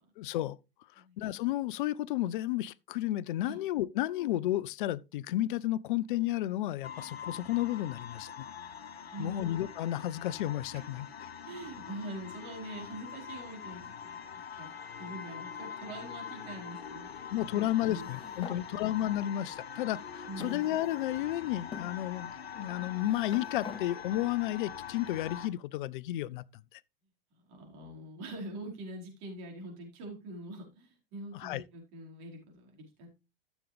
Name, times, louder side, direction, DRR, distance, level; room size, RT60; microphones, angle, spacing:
voice 1, 0.2-0.6 1.2-8.5 9.2-11.1 17.3-26.4 26.7-26.8 31.3-31.6, left 14 dB, 55° left, 0.6 m, -32 dB
sound 1, 6.8-25.5, left 7 dB, 80° left, 1.0 m, -44 dB
voice 2, 9.1-9.5 10.7-10.8 11.4-14.7 15.0-17.2 17.5-18.1 18.5-18.8 20.3-20.8 27.3-33.1, right 1 dB, 50° right, 4.9 m, -44 dB
sound 2, 17.8-18.6 19.5-19.6 20.4-21.2 21.7-21.9 22.8-23.8, left 6 dB, 15° left, 1.3 m, -45 dB
13.5 x 7.2 x 3.4 m
figure-of-eight pair, 90°, 30 cm